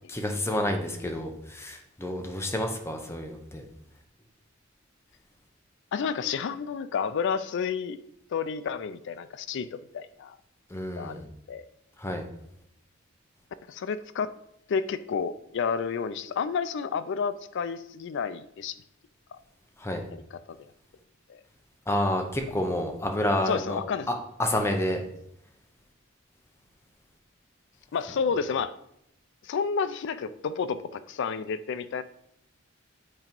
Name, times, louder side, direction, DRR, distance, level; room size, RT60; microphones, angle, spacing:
voice 1, 0.1-3.6 10.7-11.3 12.0-12.3 19.8-20.0 21.9-23.8 24.1-25.0, left 1 dB, 15° left, 3 dB, 0.7 m, -29 dB
voice 2, 5.9-8.0 8.3-10.4 11.0-11.7 13.7-14.3 14.7-18.8 20.1-20.2 20.5-20.7 21.3-21.4 23.5-24.1 27.9-28.7 29.4-32.0, left 6 dB, 60° left, 14 dB, 0.4 m, -30 dB
8.2 x 2.9 x 5.2 m, 0.78 s
head